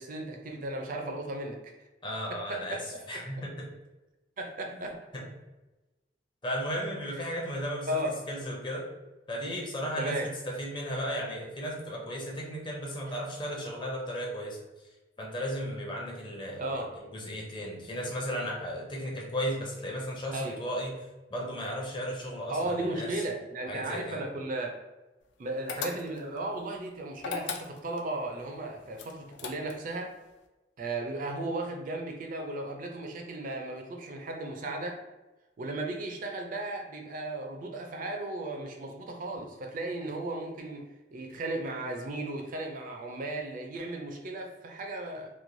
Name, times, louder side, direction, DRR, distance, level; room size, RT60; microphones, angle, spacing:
voice 1, 0.0-1.7 2.3-3.0 4.4-5.2 7.3-7.4 7.9-8.2 10.0-10.3 13.1-13.2 16.6-16.9 20.3-20.6 22.5-24.8 25.4-30.1 30.8-35.0 35.6-40.8 41.1-45.3, right 2 dB, 50° right, 3 dB, 0.4 m, -35 dB
voice 2, 2.0-2.8 3.1-3.7 4.8-4.9 5.1-5.3 6.4-7.9 8.3-8.9 9.3-14.6 15.2-16.8 17.1-23.2 23.7-24.2, equal, 25° left, -1 dB, 0.5 m, -35 dB
sound 1, 25.7-26.4 27.2-28.1 29.0-29.9, left 6 dB, 75° left, 0.4 m, -37 dB
3.0 x 2.1 x 2.6 m, 1.1 s
head